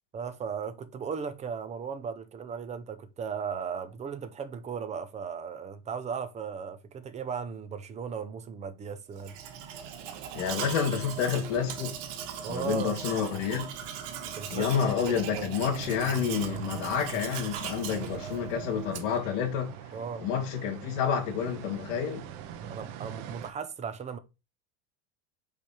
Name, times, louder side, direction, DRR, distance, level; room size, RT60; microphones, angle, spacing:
voice 1, 0.1-9.4 12.4-13.0 14.3-14.7 15.1-15.5 19.9-20.3 22.6-24.2, right 6 dB, 20° right, 0.6 m, -36 dB
Domestic sounds home sounds, 9.2-19.3, right 8 dB, 80° right, 1.4 m, -39 dB
voice 2, 10.4-11.9 12.5-13.7 14.5-19.7 20.2-22.3, left 7 dB, 80° left, 2.3 m, -29 dB
sound 1, 15.7-23.5, right 9 dB, 60° right, 1.0 m, -43 dB
5.1 x 4.9 x 4.3 m
cardioid pair, 155°, 37 cm